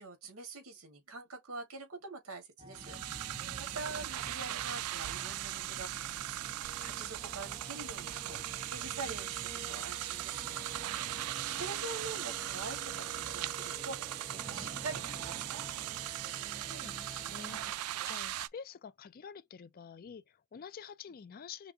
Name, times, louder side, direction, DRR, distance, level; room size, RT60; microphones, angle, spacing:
voice 1, 0.0-6.4 6.8-11.1 11.4-16.2, right 3 dB, 70° right, 1.7 m, -45 dB
sound 1, 2.6-17.7, right 1 dB, 25° right, 0.8 m, -49 dB
sound 2, 2.7-18.5, right 14 dB, 90° right, 0.3 m, -39 dB
voice 2, 3.4-3.8 16.7-21.7, left 6 dB, 45° left, 0.4 m, -49 dB
5.8 x 2.1 x 2.7 m
head